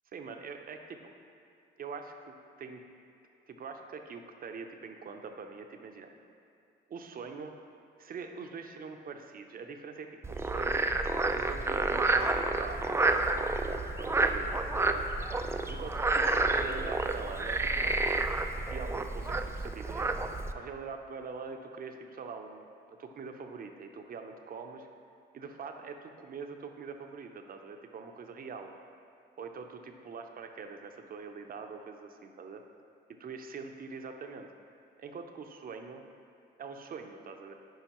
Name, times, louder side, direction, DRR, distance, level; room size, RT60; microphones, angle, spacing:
voice 1, 0.1-1.1 1.8-2.8 3.5-6.1 6.9-7.5 8.0-10.8 11.3-15.1 15.7-18.3 18.5-20.1 20.5-24.9 25.3-28.7 29.4-32.6 33.2-34.5 35.0-36.0 36.6-37.5, right 5 dB, 45° right, 5 dB, 0.6 m, -44 dB
Frog, 10.2-20.5, right 2 dB, 15° right, 0.3 m, -30 dB
10.5 x 4.8 x 3.0 m, 2.5 s
cardioid pair, 90°, 20 cm